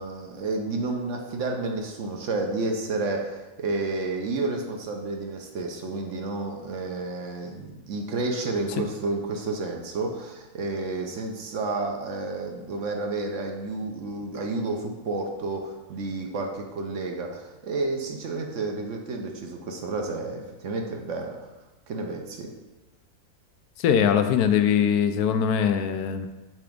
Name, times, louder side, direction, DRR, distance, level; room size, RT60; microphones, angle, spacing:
voice 1, 0.0-21.5 21.9-22.5, right 3 dB, 60° right, 3 dB, 0.9 m, -31 dB
voice 2, 23.8-26.3, left 8 dB, 90° left, 8 dB, 1.1 m, -22 dB
6.0 x 3.4 x 5.0 m, 1.1 s
omnidirectional pair, 1.6 m